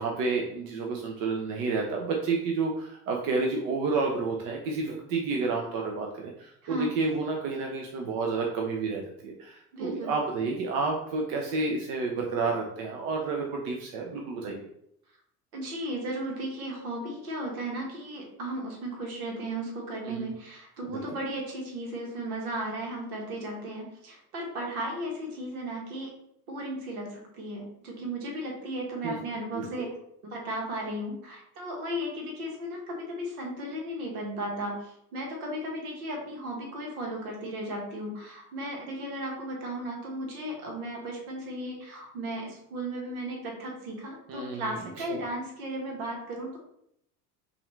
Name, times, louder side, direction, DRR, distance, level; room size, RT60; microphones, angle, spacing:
voice 1, 0.0-14.7 20.0-20.3 20.9-21.0 29.0-29.1 29.5-29.7 44.3-44.6 45.1-45.2, right 4 dB, 45° right, 0 dB, 0.8 m, -30 dB
voice 2, 9.7-10.1 15.5-26.1 26.5-29.9 30.2-46.6, right 1 dB, 70° right, 0 dB, 1.5 m, -35 dB
5.6 x 2.7 x 3.1 m, 0.74 s
figure-of-eight pair, 65°, 46 cm